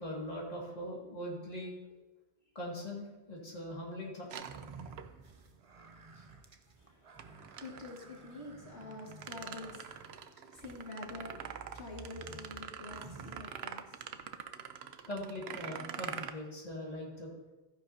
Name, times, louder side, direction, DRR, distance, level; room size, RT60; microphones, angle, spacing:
voice 1, 0.0-1.7 2.5-4.6 6.2-6.3 15.1-17.5, left 1 dB, 40° left, -4 dB, 2.4 m, -41 dB
sound 1, 4.3-5.4 7.2-8.0 8.8-16.3, right 8 dB, 75° right, 0.9 m, -45 dB
sound 2, 4.4-14.0, right 4 dB, 35° right, 0.7 m, -53 dB
voice 2, 6.8-15.1, left 2 dB, 85° left, -3 dB, 2.5 m, -48 dB
14.0 x 10.0 x 2.8 m, 1.1 s
omnidirectional pair, 1.1 m